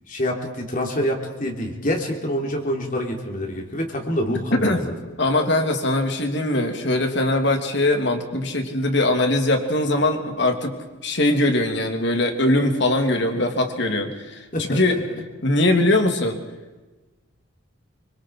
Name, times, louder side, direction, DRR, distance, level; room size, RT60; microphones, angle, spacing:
voice 1, 0.1-4.9 14.5-15.0, equal, 40° left, 1 dB, 3.4 m, -26 dB
voice 2, 4.5-4.8 5.2-10.7 11.0-14.9 15.4-16.4, left 1 dB, 55° left, 4 dB, 3.1 m, -21 dB
26.5 x 25.0 x 4.8 m, 1.2 s
head